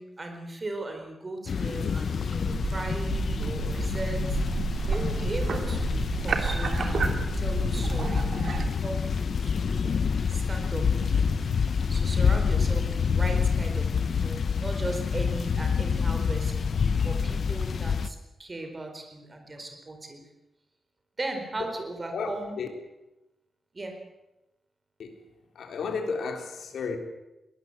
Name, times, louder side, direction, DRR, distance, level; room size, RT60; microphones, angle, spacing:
voice 1, 0.0-4.4 4.8-7.0 7.4-10.0 10.3-11.3 11.9-16.7 17.0-20.2 21.2-22.6 23.7-23.9, right 2 dB, 25° right, 5 dB, 4.1 m, -37 dB
sound 1, 1.5-18.1, left 6 dB, 50° left, 0.8 m, -27 dB
sound 2, 2.5-8.7, right 5 dB, 55° right, 2.7 m, -30 dB
voice 2, 22.1-22.7 25.0-25.1 25.6-27.0, left 5 dB, 80° left, 5 dB, 3.7 m, -33 dB
22.0 x 19.0 x 7.9 m, 0.96 s
wide cardioid pair, 175°, 0 cm